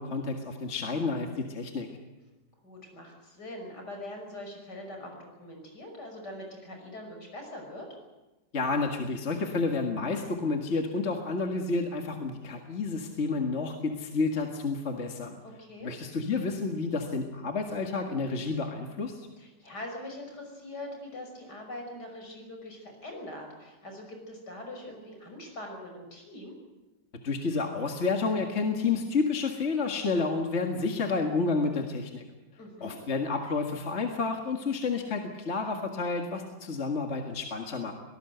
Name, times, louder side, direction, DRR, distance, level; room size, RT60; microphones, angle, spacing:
voice 1, 0.0-1.9 8.5-15.4 15.8-19.3 27.1-32.2 32.8-37.9, left 4 dB, 40° left, 3 dB, 2.1 m, -30 dB
voice 2, 2.6-7.9 15.6-15.9 19.4-26.5 32.6-32.9, left 1 dB, 65° left, 3 dB, 6.4 m, -42 dB
24.5 x 18.5 x 8.0 m, 1.1 s
omnidirectional pair, 1.9 m